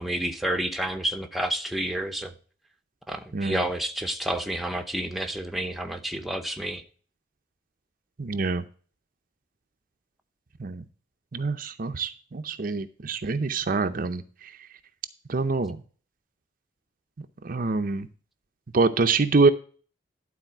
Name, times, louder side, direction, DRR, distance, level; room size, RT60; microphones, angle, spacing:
voice 1, 0.0-2.3 3.1-6.8, right 1 dB, ahead, 6 dB, 0.8 m, -30 dB
voice 2, 3.3-3.7 8.2-8.6 10.6-10.8 11.3-14.5 15.3-15.8 17.4-18.1 18.7-19.5, right 4 dB, 50° right, 9 dB, 0.6 m, -25 dB
11.5 x 4.2 x 5.8 m, 0.41 s
head